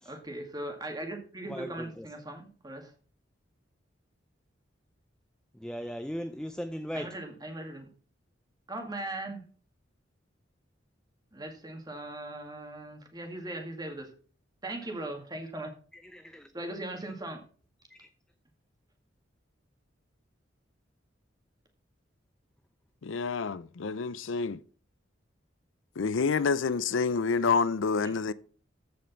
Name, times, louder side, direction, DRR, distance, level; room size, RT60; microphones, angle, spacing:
voice 1, 0.0-2.9 6.9-7.9 8.7-9.4 11.3-14.1 14.6-15.7 16.5-17.4 28.0-28.2, right 1 dB, 20° right, 2.0 m, -39 dB
voice 2, 5.5-7.1 16.1-16.5 17.9-18.1, equal, 5° left, 0.5 m, -38 dB
voice 3, 23.0-24.6 26.0-28.3, left 5 dB, 85° left, 0.5 m, -28 dB
14.5 x 5.2 x 5.7 m
head